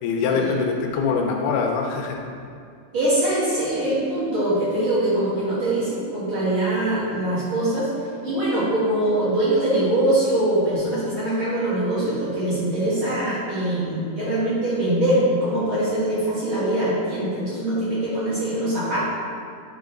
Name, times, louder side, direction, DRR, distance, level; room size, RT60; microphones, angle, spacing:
voice 1, 0.0-2.2, left 5 dB, 85° left, 1 dB, 2.3 m, -23 dB
voice 2, 2.9-7.9 8.2-19.1, right 1 dB, 50° right, -9 dB, 1.8 m, -23 dB
8.2 x 4.1 x 3.8 m, 2.4 s
omnidirectional pair, 3.6 m